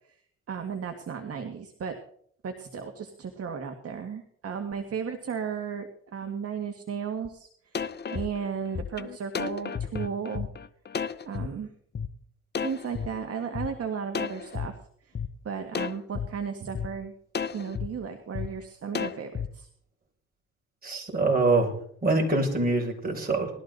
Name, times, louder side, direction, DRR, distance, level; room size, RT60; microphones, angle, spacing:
voice 1, 0.5-1.9 2.4-7.5 8.1-10.5 11.3-11.7 12.6-14.8 15.5-17.1 17.5-19.7, right 6 dB, 50° right, 5 dB, 1.8 m, -34 dB
sound 1, 7.3-7.4 7.8-11.5 12.0-12.1 12.6-13.7 14.1-14.7 15.2-15.3 15.8-16.3 16.8-16.9 17.4-17.9 18.4-18.5 19.0-19.5, left 6 dB, 35° left, 0.8 m, -32 dB
voice 2, 20.8-21.7 22.0-23.5, right 3 dB, 30° right, 0 dB, 6.3 m, -24 dB
20.0 x 13.5 x 4.0 m, 0.64 s
cardioid pair, 90°, 30 cm